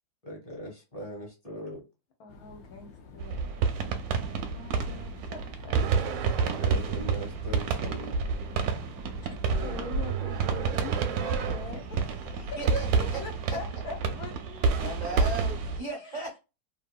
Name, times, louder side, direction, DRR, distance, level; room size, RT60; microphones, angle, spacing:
voice 1, 0.2-1.8 6.4-8.2, equal, 25° left, 1.1 m, -40 dB
voice 2, 2.2-3.5 3.9-4.2 4.5-6.0 9.6-12.0 12.4-15.0 15.9-16.3, left 4 dB, 65° left, 1.1 m, -43 dB
sound 1, 2.3-13.5, left 4 dB, 90° left, 0.6 m, -49 dB
sound 2, 3.2-15.8, right 5 dB, 70° right, 0.9 m, -29 dB
sound 3, 5.7-7.0 9.4-11.8 13.9-14.3 14.7-15.3, right 9 dB, 85° right, 1.2 m, -36 dB
voice 3, 12.3-13.2 14.7-16.4, right 3 dB, 50° right, 0.5 m, -37 dB
2.8 x 2.6 x 2.2 m
omnidirectional pair, 1.9 m